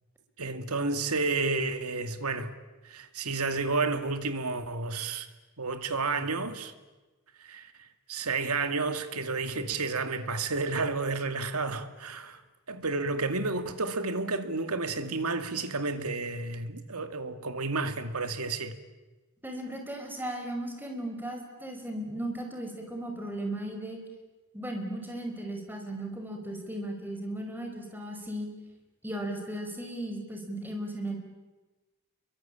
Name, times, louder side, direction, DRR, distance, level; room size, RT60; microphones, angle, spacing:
voice 1, 0.4-2.5 2.8-5.3 5.6-6.7 7.4-12.4 12.7-18.8, right 3 dB, 90° right, 2.3 m, -31 dB
voice 2, 19.4-24.0 24.5-28.5 29.0-31.2, right 1 dB, 10° right, 5.3 m, -36 dB
29.0 x 23.0 x 8.9 m
head